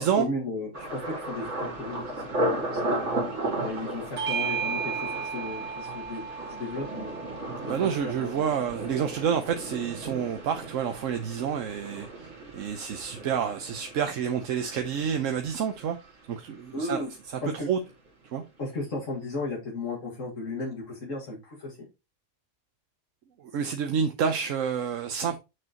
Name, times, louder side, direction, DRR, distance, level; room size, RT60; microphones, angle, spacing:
voice 1, 0.0-3.1 3.6-6.2 6.5-7.2 7.6-8.4 16.7-17.1 17.4-17.7 18.6-21.8, left 2 dB, 75° left, 2.3 m, -35 dB
Thunder, 0.7-16.5 16.8-17.4 17.8-18.1, right 1 dB, 65° right, 2.3 m, -35 dB
Bell / Doorbell, 4.2-9.0, right 6 dB, 30° right, 1.4 m, -35 dB
voice 2, 7.7-16.0 16.3-17.0 17.3-17.8 18.3-18.4 23.4-25.4, right 7 dB, 85° right, 1.1 m, -29 dB
6.6 x 6.5 x 2.9 m
omnidirectional pair, 1.3 m